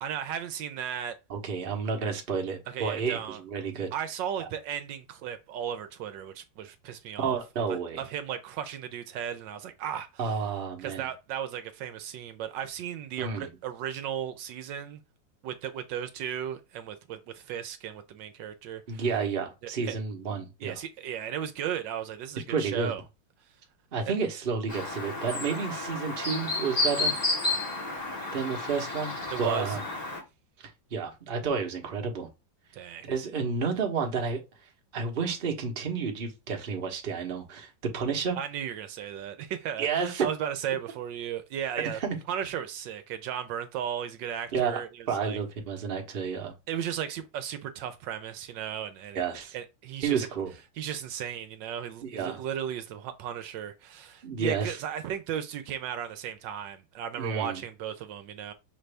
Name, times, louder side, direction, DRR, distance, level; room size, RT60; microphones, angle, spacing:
voice 1, 0.0-1.2 2.7-3.4 3.9-7.4 7.7-10.4 10.8-15.0 15.4-19.0 19.6-19.9 20.6-23.0 24.1-24.2 29.3-29.8 32.7-33.1 38.4-42.0 42.3-45.4 46.7-49.2 49.5-50.3 50.8-58.5, right 9 dB, 75° right, 1.2 m, -35 dB
voice 2, 1.3-3.9 4.4-4.5 7.2-8.0 10.2-11.1 13.2-13.5 18.9-20.8 22.5-22.9 23.9-27.1 28.3-29.8 30.9-32.3 33.1-34.4 34.9-38.4 39.8-40.3 41.9-42.2 44.5-44.8 45.1-46.5 49.1-49.5 50.0-50.5 52.0-52.4 54.2-54.8 57.2-57.6, right 5 dB, 40° right, 0.9 m, -30 dB
Chirp tweet, 24.7-30.2, left 2 dB, 25° left, 1.0 m, -31 dB
5.8 x 2.6 x 3.3 m
omnidirectional pair, 2.0 m